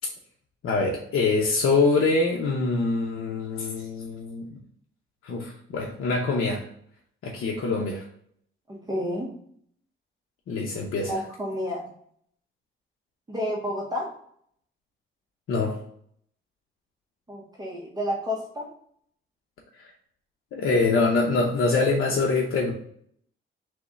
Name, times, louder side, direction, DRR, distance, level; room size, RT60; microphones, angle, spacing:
voice 1, 0.6-4.4 5.2-6.6 7.2-8.0 10.5-11.1 15.5-15.8 19.8-19.9 20.5-22.7, left 3 dB, 85° left, -1 dB, 0.7 m, -24 dB
voice 2, 8.7-9.3 11.0-11.9 13.3-14.2 17.3-18.7, equal, 20° right, -3 dB, 0.9 m, -30 dB
3.6 x 3.1 x 4.0 m, 0.65 s
wide cardioid pair, 140°, 21 cm